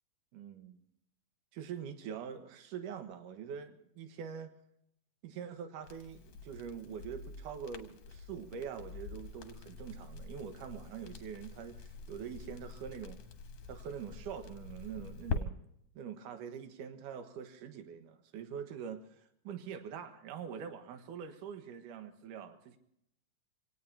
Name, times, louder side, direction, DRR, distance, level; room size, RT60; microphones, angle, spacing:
voice 1, 0.3-0.8 1.5-4.5 5.2-13.2 13.7-15.5 16.0-22.8, right 7 dB, 70° right, 7 dB, 2.8 m, -44 dB
Crackle, 5.8-15.4, left 4 dB, 60° left, 2.4 m, -45 dB
28.0 x 18.0 x 2.8 m, 0.73 s
omnidirectional pair, 4.0 m